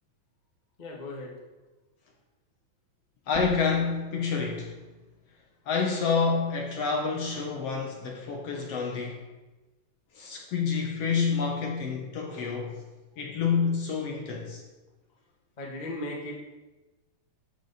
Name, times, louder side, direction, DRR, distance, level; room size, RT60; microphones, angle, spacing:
voice 1, 0.8-1.4 15.6-16.5, left 1 dB, 90° left, -2 dB, 0.4 m, -37 dB
sound 1, 3.2-8.5 8.9-10.6, left 2 dB, 40° left, 1.7 m, -48 dB
voice 2, 3.3-4.7 5.6-9.2 10.1-12.8 13.2-14.6, left 5 dB, 65° left, 0 dB, 1.6 m, -28 dB
13.5 x 6.1 x 4.1 m, 1.1 s
omnidirectional pair, 4.1 m